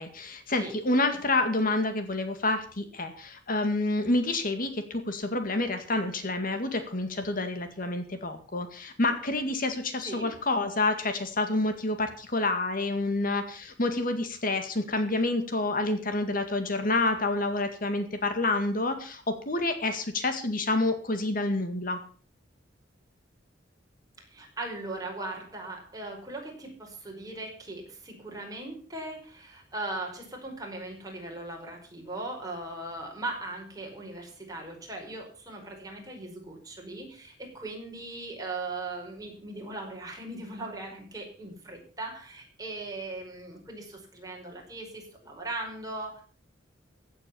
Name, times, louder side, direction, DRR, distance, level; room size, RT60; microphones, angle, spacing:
voice 1, 0.0-22.0, left 2 dB, 45° left, 7 dB, 2.0 m, -28 dB
voice 2, 10.0-10.3 24.2-46.2, right 2 dB, 20° right, 1 dB, 5.0 m, -39 dB
16.0 x 8.7 x 6.9 m, 0.41 s
head